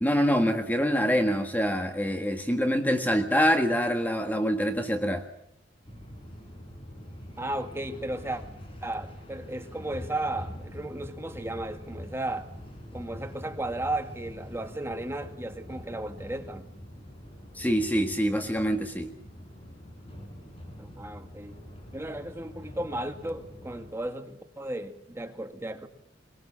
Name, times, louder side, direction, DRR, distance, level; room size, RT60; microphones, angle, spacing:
voice 1, 0.0-5.2 17.5-19.1, equal, 10° left, 6 dB, 1.6 m, -25 dB
Content warning, 5.8-23.9, equal, 30° left, 6.1 m, -44 dB
voice 2, 7.4-8.4 8.8-12.5 12.9-16.7 20.8-21.6 21.9-25.9, right 1 dB, 15° right, 6 dB, 2.0 m, -34 dB
22.5 x 21.5 x 7.4 m, 0.79 s
head